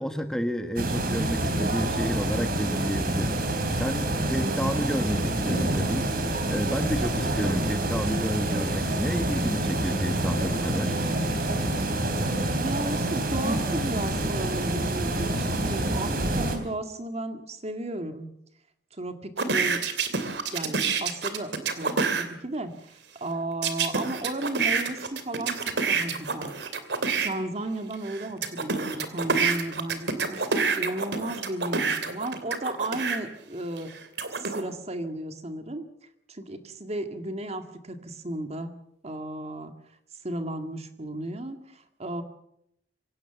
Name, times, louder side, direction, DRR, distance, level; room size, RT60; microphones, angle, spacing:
voice 1, 0.0-3.4 3.8-10.9, equal, 5° left, 7 dB, 1.3 m, -30 dB
sound 1, 0.8-16.6, right 1 dB, 55° right, 3.5 m, -27 dB
voice 2, 12.5-18.3 18.9-19.8 20.5-22.7 23.2-26.5 27.2-33.9 34.4-35.8 36.3-38.7 39.0-39.7 40.2-42.2, right 1 dB, 40° right, 7 dB, 2.0 m, -34 dB
sound 2, 19.4-22.3 23.6-27.3 27.9-33.2 33.8-34.6, right 5 dB, 75° right, 2.7 m, -27 dB
25.0 x 17.0 x 6.9 m, 0.76 s
head